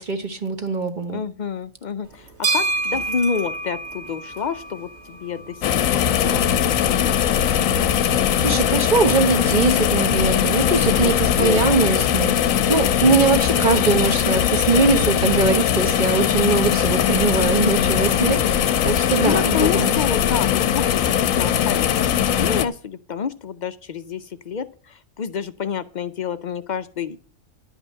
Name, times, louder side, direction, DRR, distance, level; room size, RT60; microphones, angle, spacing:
voice 1, 0.0-1.2 8.0-18.5 18.8-19.9, right 4 dB, 40° right, 1.2 m, -21 dB
voice 2, 1.1-6.4 6.9-7.2 10.6-11.7 18.4-27.2, left 6 dB, 60° left, 0.5 m, -29 dB
sound 1, 2.0-15.9, right 3 dB, 80° right, 3.1 m, -33 dB
sound 2, 5.6-22.7, left 9 dB, 90° left, 1.1 m, -20 dB
11.0 x 5.4 x 7.4 m
omnidirectional pair, 1.4 m